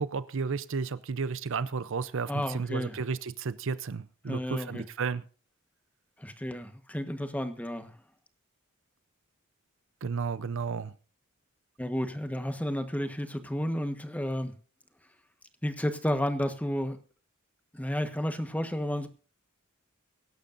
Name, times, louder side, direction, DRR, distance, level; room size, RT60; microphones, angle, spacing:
voice 1, 0.0-5.2 10.0-10.9, right 5 dB, 65° right, 0.6 m, -33 dB
voice 2, 2.3-3.0 4.3-4.8 6.2-7.9 11.8-14.5 15.6-17.0 17.7-19.1, equal, 5° left, 1.3 m, -32 dB
23.5 x 11.5 x 2.6 m
head